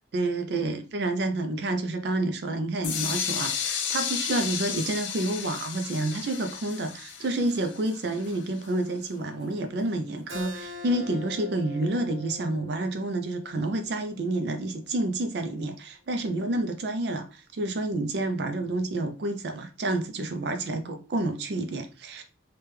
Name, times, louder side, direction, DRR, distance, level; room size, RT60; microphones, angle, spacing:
voice 1, 0.1-22.2, right 2 dB, 60° right, 0.4 m, -29 dB
sound 1, 2.8-8.7, left 8 dB, 75° left, 0.4 m, -33 dB
Keyboard (musical), 10.3-15.5, left 2 dB, 85° right, 0.8 m, -44 dB
3.3 x 2.2 x 3.1 m
head